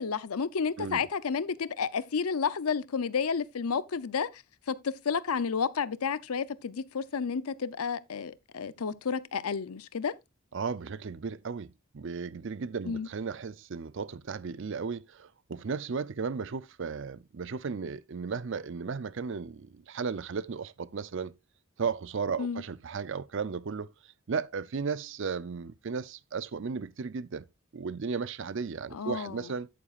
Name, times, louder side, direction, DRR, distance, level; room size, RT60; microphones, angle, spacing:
voice 1, 0.0-4.4 4.7-10.1 12.9-13.1 22.4-22.6 28.9-29.4, left 6 dB, 80° left, 0.6 m, -31 dB
voice 2, 10.5-21.3 21.8-27.4 27.7-29.7, right 5 dB, 55° right, 0.5 m, -35 dB
10.0 x 8.9 x 2.4 m
head